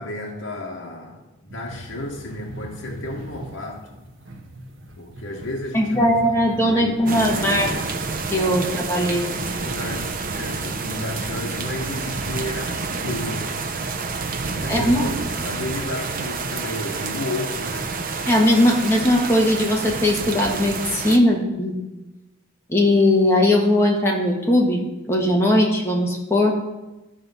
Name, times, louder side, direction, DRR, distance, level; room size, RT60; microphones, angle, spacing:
voice 1, 0.0-4.0 5.0-6.2 6.6-8.0 8.6-8.8 9.1-13.6 14.6-18.0, left 1 dB, 70° left, -2 dB, 1.1 m, -33 dB
sound 1, 1.5-16.5, right 1 dB, 65° right, 1.3 m, -40 dB
voice 2, 5.7-7.7 8.3-9.3 14.7-15.1 18.3-21.8 22.7-26.5, left 1 dB, 10° left, -1 dB, 1.4 m, -19 dB
sound 2, 7.1-21.2, right 4 dB, 40° right, 0.5 m, -29 dB
13.0 x 4.4 x 5.4 m, 1.0 s
head